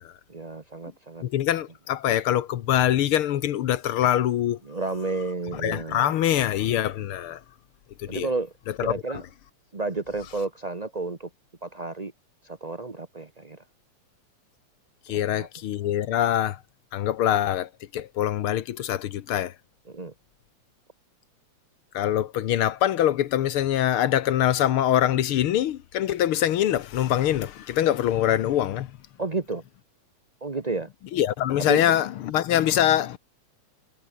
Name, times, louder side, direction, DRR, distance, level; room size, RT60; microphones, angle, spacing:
voice 1, 0.3-1.2 4.7-6.1 8.1-8.5 8.8-9.2 9.7-11.3 11.6-12.1 12.4-13.6 15.1-15.5 19.9-20.1 29.2-29.6 30.4-30.9 31.7-31.8, right 3 dB, 35° right, 0.6 m, -31 dB
voice 2, 1.2-4.6 5.5-7.4 8.0-8.3 15.1-16.6 16.9-19.5 21.9-28.9 31.1-33.2, left 11 dB, 65° left, 1.4 m, -24 dB
omnidirectional pair, 3.3 m